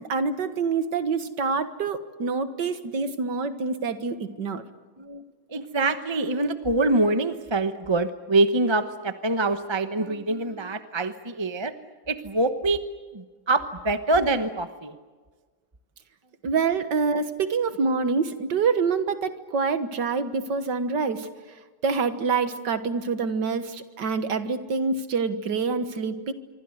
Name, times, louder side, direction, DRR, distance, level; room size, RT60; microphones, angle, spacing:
voice 1, 0.0-4.6 16.4-26.3, right 5 dB, 75° right, 10 dB, 2.1 m, -26 dB
voice 2, 5.5-11.8 12.1-12.8 13.1-15.0, right 2 dB, 20° right, 9 dB, 0.8 m, -25 dB
26.5 x 24.0 x 8.0 m, 1.4 s
omnidirectional pair, 1.9 m